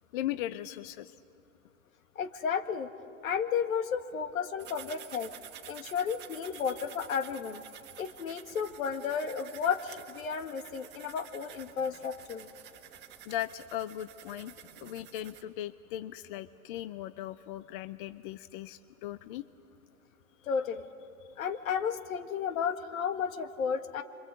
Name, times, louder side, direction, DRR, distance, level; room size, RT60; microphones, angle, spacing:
voice 1, 0.1-1.2 6.5-6.6 13.2-14.5 14.8-19.5, left 13 dB, 35° left, 14 dB, 0.6 m, -38 dB
voice 2, 2.2-2.9 3.2-5.3 5.7-7.6 8.0-12.5 20.5-20.8 21.4-24.0, left 7 dB, 65° left, 8 dB, 2.1 m, -33 dB
sound 1, 4.6-15.4, right 11 dB, 25° right, 1.6 m, -50 dB
27.5 x 24.5 x 8.4 m, 2.8 s
hypercardioid pair, 130°, 44 cm